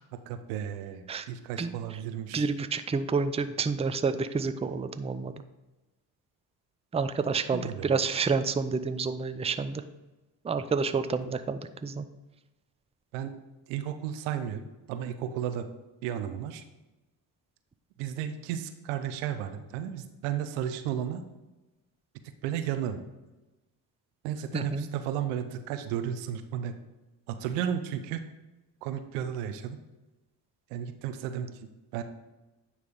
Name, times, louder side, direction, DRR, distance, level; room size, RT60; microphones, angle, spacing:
voice 1, 0.3-2.5 7.5-8.0 13.1-13.3 13.7-14.6 14.9-15.7 16.0-16.6 18.0-21.2 22.4-23.0 24.2-26.8 27.3-28.2 28.8-29.8 30.7-32.0, right 9 dB, 90° right, 9 dB, 0.7 m, -33 dB
voice 2, 1.6-2.0 2.3-5.3 6.9-9.8 10.4-12.1 24.5-24.9, right 5 dB, 15° right, 11 dB, 0.5 m, -29 dB
9.7 x 3.3 x 5.3 m, 1.1 s
hypercardioid pair, 50°, 49 cm